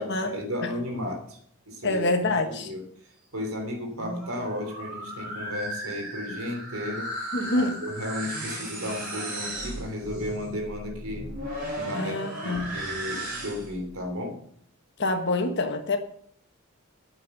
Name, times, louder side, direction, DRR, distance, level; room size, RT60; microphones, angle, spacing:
voice 1, 0.3-1.4 1.7-2.0 2.4-2.8 3.3-7.1 7.4-11.3 11.7-14.4, left 1 dB, 75° right, 4 dB, 3.2 m, -34 dB
voice 2, 1.8-2.7 7.3-7.9 11.9-12.7 15.0-16.0, left 2 dB, 50° left, 5 dB, 1.3 m, -26 dB
sound 1, 3.8-13.8, right 1 dB, 40° right, 5.5 m, -36 dB
9.4 x 8.6 x 6.6 m, 0.64 s
head